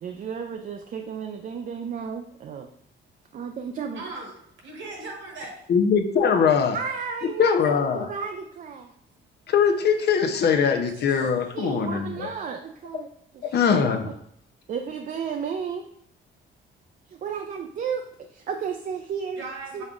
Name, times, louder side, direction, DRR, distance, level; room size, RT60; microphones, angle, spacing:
voice 1, 0.0-2.7 3.3-4.0 6.7-8.9 10.5-10.6 11.1-11.3 11.5-13.1 13.3-13.6 14.0-14.1 14.7-15.9 17.1-18.0 18.3-19.4 19.7-19.8, right 6 dB, 45° right, 4 dB, 0.4 m, -33 dB
voice 2, 3.9-5.7 19.4-19.8, right 3 dB, 70° right, 0 dB, 1.3 m, -38 dB
voice 3, 5.7-6.8 7.4-8.1 9.5-12.3 13.4-14.1, left 6 dB, 55° left, 5 dB, 0.6 m, -21 dB
5.3 x 3.6 x 2.4 m, 0.68 s
cardioid pair, 90°, 20 cm